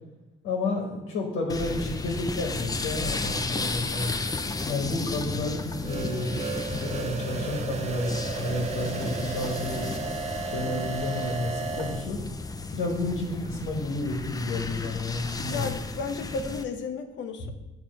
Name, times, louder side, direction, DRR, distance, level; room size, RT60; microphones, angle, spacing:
voice 1, 0.4-4.1 4.7-6.4 6.7-9.9 10.4-12.2 12.7-15.7, left 2 dB, 80° left, 0 dB, 1.2 m, -31 dB
sound 1, 1.5-16.6, left 3 dB, 20° left, 0.4 m, -34 dB
sound 2, 5.8-12.1, right 5 dB, 35° right, 0.6 m, -34 dB
voice 2, 15.5-17.5, left 4 dB, 65° left, 6 dB, 0.6 m, -33 dB
7.8 x 2.9 x 5.2 m, 1.1 s
cardioid pair, 90°, 20 cm